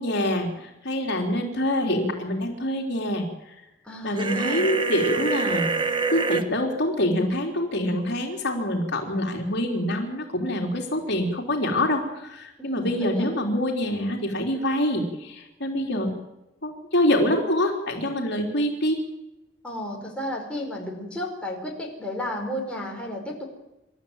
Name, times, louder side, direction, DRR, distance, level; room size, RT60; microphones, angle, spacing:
voice 1, 0.0-3.2 4.0-16.2 16.6-19.0, left 1 dB, 60° left, 1 dB, 3.9 m, -25 dB
voice 2, 3.9-4.7 12.6-13.4 15.8-16.0 19.6-23.4, left 1 dB, 5° left, -1 dB, 5.2 m, -33 dB
sound 1, 4.2-6.4, right 4 dB, 25° right, 1.1 m, -26 dB
27.5 x 13.5 x 9.2 m, 0.97 s
head